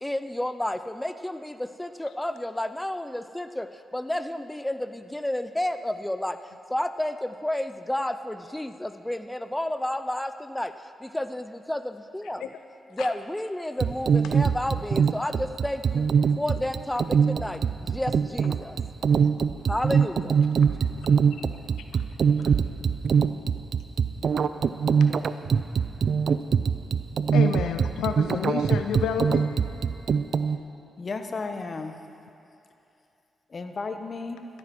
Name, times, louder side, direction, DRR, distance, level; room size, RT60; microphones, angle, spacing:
voice 1, 0.0-6.4 6.7-12.5 12.9-16.1 16.4-18.8 19.7-20.4, left 1 dB, 10° left, 10 dB, 0.6 m, -31 dB
sound 1, 13.8-30.6, right 6 dB, 65° right, 0.4 m, -23 dB
voice 2, 27.3-29.8, left 7 dB, 85° left, 7 dB, 0.5 m, -30 dB
voice 3, 31.0-32.0 33.5-34.5, left 3 dB, 50° left, 7 dB, 1.2 m, -34 dB
15.0 x 9.4 x 6.1 m, 2.7 s
supercardioid pair, 50°, 0 cm